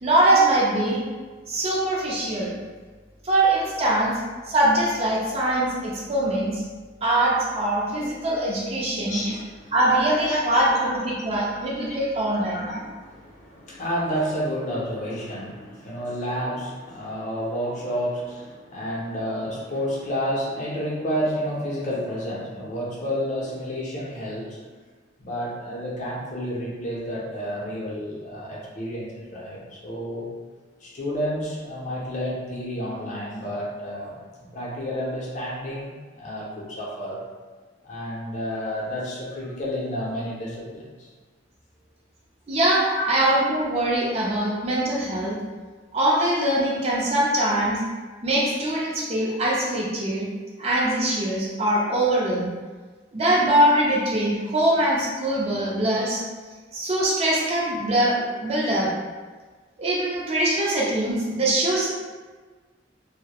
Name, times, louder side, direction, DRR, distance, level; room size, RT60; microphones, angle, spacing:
voice 1, 0.0-1.0 1.5-2.5 3.2-4.1 4.5-6.6 7.0-9.2 9.7-12.7 42.5-45.4 45.9-47.8 48.2-50.3 50.6-52.5 53.1-56.2 56.7-58.9 59.8-61.9, right 1 dB, 35° right, -5 dB, 0.4 m, -22 dB
voice 2, 9.1-9.8 10.1-12.0 12.5-24.6 25.2-30.3 30.8-37.2 37.8-41.1 42.9-43.1, equal, 40° left, -5 dB, 0.5 m, -30 dB
2.2 x 2.0 x 2.8 m, 1.4 s
head